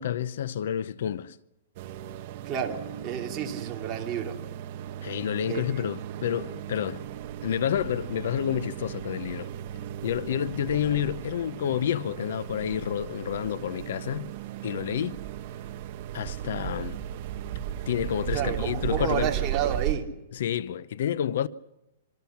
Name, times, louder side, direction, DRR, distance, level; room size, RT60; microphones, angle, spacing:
voice 1, 0.0-1.4 5.0-7.0 7.4-9.5 10.0-14.3 14.6-15.2 16.1-17.0 17.9-19.3 20.3-21.5, left 9 dB, 60° left, 0.8 m, -29 dB
sound 1, 1.8-19.9, right 11 dB, 40° right, 1.3 m, -36 dB
voice 2, 2.4-4.4 5.5-5.8 18.3-20.1, right 9 dB, 20° right, 3.0 m, -30 dB
26.0 x 25.0 x 5.9 m
hypercardioid pair, 170°, 0 cm